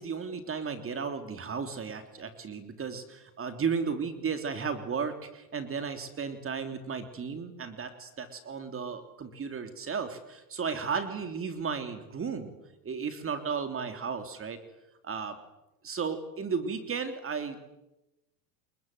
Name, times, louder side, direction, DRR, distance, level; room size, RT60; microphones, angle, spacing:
voice 1, 0.0-12.5 12.8-14.6 15.0-15.4 15.8-17.6, right 6 dB, 25° right, 8 dB, 3.4 m, -34 dB
28.5 x 22.0 x 9.4 m, 0.95 s
hypercardioid pair, 90°, 47 cm